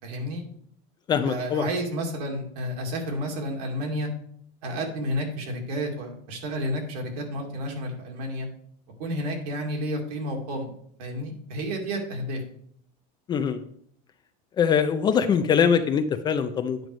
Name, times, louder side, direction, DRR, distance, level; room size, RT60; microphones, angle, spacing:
voice 1, 0.0-0.4 1.3-4.1 4.6-8.5 9.0-10.7 11.0-12.4, equal, 70° right, 1 dB, 2.4 m, -31 dB
voice 2, 1.1-1.7 13.3-13.6 14.6-16.8, left 7 dB, 20° left, 9 dB, 0.4 m, -22 dB
9.1 x 4.6 x 5.2 m, 0.64 s
supercardioid pair, 155°, 21 cm